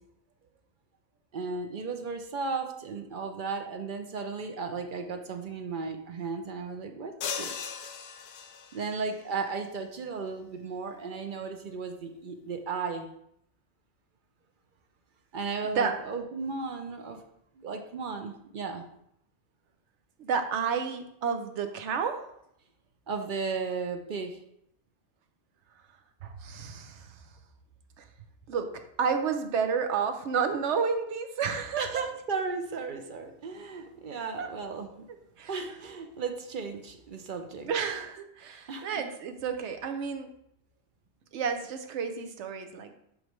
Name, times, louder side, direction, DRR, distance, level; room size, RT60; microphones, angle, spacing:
voice 1, 1.3-7.5 8.7-13.1 15.3-17.2 17.6-18.8 23.1-24.4 31.8-35.1 35.5-37.7 38.7-39.0, right 4 dB, 55° right, 5 dB, 0.7 m, -35 dB
sound 1, 7.2-9.0, left 7 dB, 70° left, 0.8 m, -37 dB
voice 2, 20.2-22.2 26.2-27.2 28.0-28.1 28.5-31.9 34.4-34.5 35.4-35.6 37.6-40.3 41.3-43.0, right 6 dB, 80° right, 7 dB, 1.0 m, -31 dB
6.2 x 5.0 x 3.1 m, 0.74 s
omnidirectional pair, 1.2 m